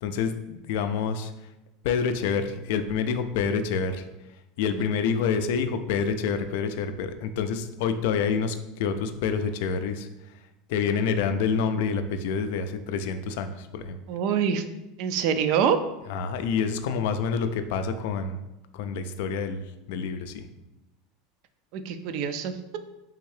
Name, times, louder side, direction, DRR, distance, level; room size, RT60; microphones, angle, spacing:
voice 1, 0.0-1.3 1.8-4.0 4.6-10.1 10.7-14.0 16.1-18.4 18.7-20.5, left 6 dB, 70° left, 9 dB, 0.3 m, -27 dB
voice 2, 14.1-14.6 15.0-15.8 21.7-22.5, right 7 dB, 60° right, 9 dB, 0.3 m, -25 dB
3.5 x 2.7 x 3.2 m, 0.95 s
supercardioid pair, 110°, 0 cm